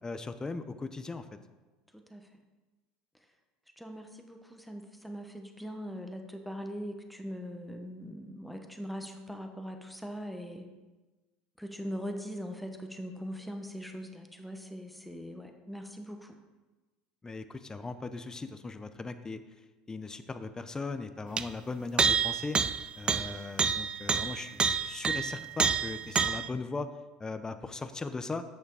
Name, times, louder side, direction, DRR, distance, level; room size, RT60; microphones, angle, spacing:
voice 1, 0.0-1.3 17.2-19.4 19.9-22.6 23.0-26.9 27.2-28.4, left 3 dB, 20° left, 10 dB, 0.7 m, -38 dB
voice 2, 1.9-2.3 3.8-10.7 11.6-16.3, equal, ahead, 4 dB, 1.1 m, -41 dB
sound 1, 21.4-21.5 22.0-26.5, right 6 dB, 25° right, 0.4 m, -28 dB
8.5 x 6.6 x 4.8 m, 1.2 s
hypercardioid pair, 80°, 4 cm